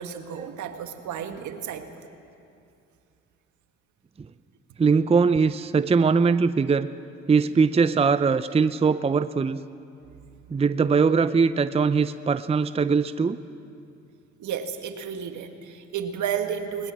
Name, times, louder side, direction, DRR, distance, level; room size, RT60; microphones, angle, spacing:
voice 1, 0.0-1.9 14.4-16.9, right 8 dB, 70° right, 7 dB, 1.8 m, -32 dB
voice 2, 4.8-6.9 7.3-9.6 10.5-13.4, right 5 dB, 20° right, 13 dB, 0.6 m, -21 dB
20.0 x 20.0 x 7.5 m, 2.5 s
supercardioid pair, 65°, 31 cm